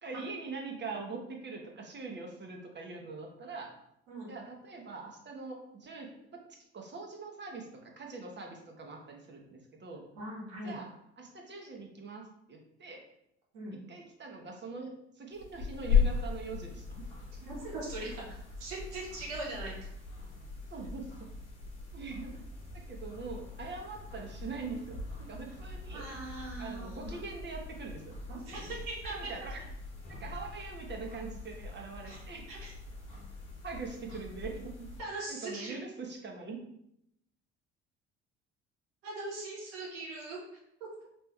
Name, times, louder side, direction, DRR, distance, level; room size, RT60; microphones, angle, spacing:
voice 1, 0.0-3.7 4.3-6.1 6.7-10.1 10.6-10.9 11.2-13.1 13.9-17.1 20.7-21.3 21.9-22.5 22.7-25.0 25.3-26.1 26.6-28.2 29.0-29.6 30.1-32.5 33.6-34.7 35.3-36.6, right 4 dB, 30° right, 0 dB, 1.3 m, -43 dB
voice 2, 10.1-10.7 13.5-13.8 17.4-18.1 18.6-19.7 25.9-27.2 28.3-29.1 32.1-32.2 32.5-32.7 35.0-35.8 39.0-40.4 40.8-40.9, right 2 dB, 75° right, -5 dB, 1.8 m, -40 dB
sound 1, 15.3-35.0, left 6 dB, 80° left, 1.3 m, -38 dB
4.7 x 3.3 x 3.4 m, 0.75 s
hypercardioid pair, 60°, 34 cm